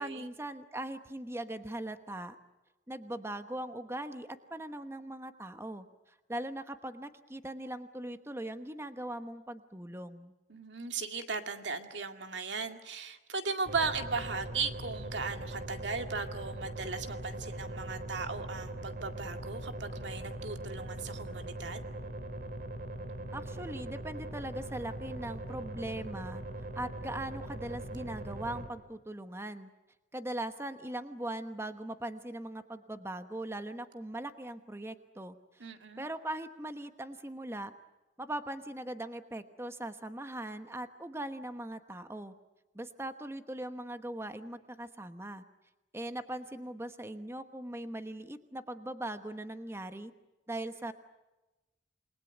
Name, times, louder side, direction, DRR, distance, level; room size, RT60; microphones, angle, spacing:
voice 1, 0.0-2.4 2.9-10.3 23.3-26.4 26.7-29.7 30.1-35.7 36.0-37.7 38.2-42.3 42.7-45.4 45.9-50.1 50.5-50.9, right 1 dB, 15° right, 9 dB, 1.1 m, -40 dB
voice 2, 10.5-21.8 35.6-36.1, right 4 dB, 90° right, 6 dB, 2.2 m, -37 dB
sound 1, 13.7-28.7, right 1 dB, 55° right, 2.7 m, -41 dB
28.5 x 21.0 x 9.2 m, 1.1 s
head